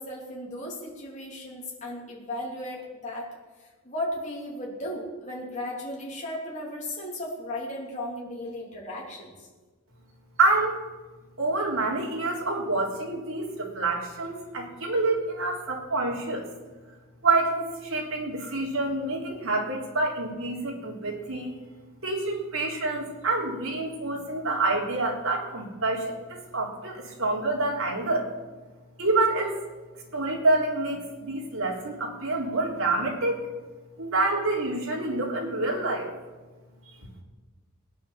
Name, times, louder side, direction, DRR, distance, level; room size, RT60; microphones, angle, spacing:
voice 1, 0.0-3.3 3.6-9.5, left 1 dB, 35° left, -4 dB, 3.2 m, -35 dB
voice 2, 10.4-10.8 11.4-16.5 17.2-21.5 22.0-28.3 29.0-29.6 30.1-33.4 34.0-36.1, right 2 dB, 75° right, -1 dB, 3.5 m, -27 dB
18.0 x 9.6 x 7.4 m, 1.3 s
head